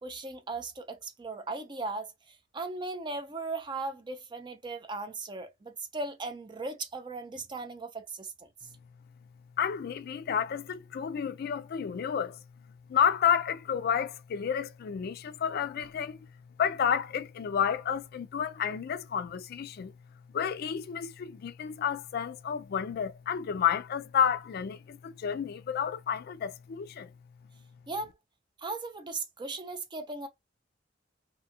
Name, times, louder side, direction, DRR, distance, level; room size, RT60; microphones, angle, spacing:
voice 1, 0.0-8.5 27.9-28.1 28.6-30.3, right 3 dB, 25° right, 0.5 m, -37 dB
voice 2, 9.6-12.4 12.9-16.2 16.6-19.9 20.3-27.1, left 8 dB, 55° left, 0.3 m, -30 dB
2.7 x 2.3 x 2.7 m
head